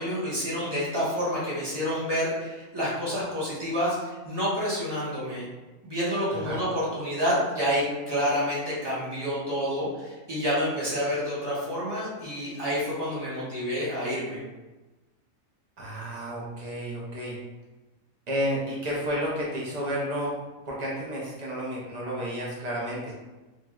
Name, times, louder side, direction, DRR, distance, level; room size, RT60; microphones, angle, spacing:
voice 1, 0.0-5.5 5.8-14.4, equal, 20° right, -9 dB, 0.8 m, -28 dB
voice 2, 15.8-17.4 18.3-20.3 20.7-23.1, equal, 85° right, -5 dB, 0.3 m, -31 dB
3.1 x 2.6 x 2.3 m, 1.1 s
omnidirectional pair, 1.5 m